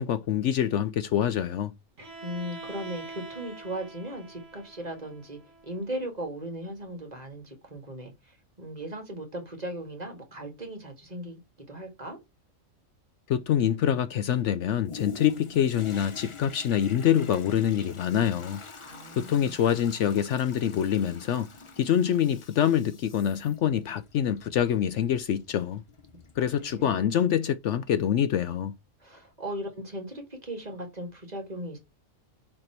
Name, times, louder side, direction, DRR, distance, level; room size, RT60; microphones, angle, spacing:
voice 1, 0.0-1.7 13.3-18.6 19.2-21.5 21.8-25.8 26.4-28.7, left 9 dB, 70° left, 0.8 m, -25 dB
Bowed string instrument, 2.0-5.9, right 2 dB, 50° right, 1.9 m, -44 dB
voice 2, 2.2-11.4 11.7-12.2 18.8-19.6 26.6-27.0 29.0-31.8, right 1 dB, 30° right, 1.8 m, -38 dB
Toilet flush, 14.9-27.3 27.8-27.9, left 5 dB, 35° left, 0.6 m, -47 dB
6.6 x 3.5 x 4.4 m
omnidirectional pair, 1.4 m